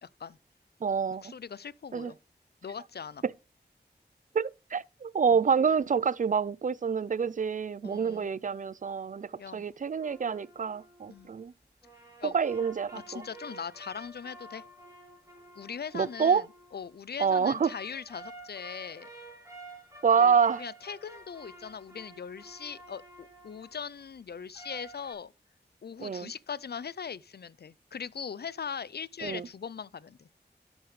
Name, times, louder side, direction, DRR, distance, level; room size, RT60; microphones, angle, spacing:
voice 1, 0.0-0.4 1.2-2.2 2.6-3.2 5.3-5.4 7.8-8.3 9.4-9.7 11.1-11.3 12.2-12.4 13.1-14.6 15.6-16.4 16.7-19.1 20.2-25.3 25.8-30.3, left 6 dB, 65° left, 0.5 m, -40 dB
voice 2, 0.8-1.2 1.9-2.1 4.3-11.5 12.2-13.2 15.9-16.4 17.2-17.7 20.0-20.6 26.0-26.3 29.2-29.5, right 6 dB, 45° right, 0.4 m, -27 dB
sound 1, 10.0-11.3 11.8-16.9 17.5-23.7 24.5-25.1, right 1 dB, 20° right, 2.9 m, -50 dB
12.0 x 6.3 x 3.2 m
wide cardioid pair, 60°, 18 cm